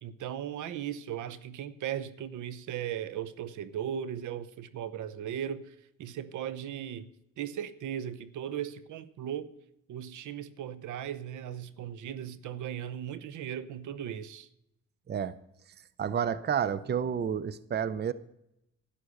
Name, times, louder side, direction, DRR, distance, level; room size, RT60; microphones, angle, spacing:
voice 1, 0.0-7.1 7.4-9.5 9.9-14.5, right 9 dB, 75° right, 0.9 m, -37 dB
voice 2, 16.0-18.1, right 8 dB, 35° right, 0.6 m, -30 dB
11.0 x 10.0 x 6.5 m
cardioid pair, 90°, 30 cm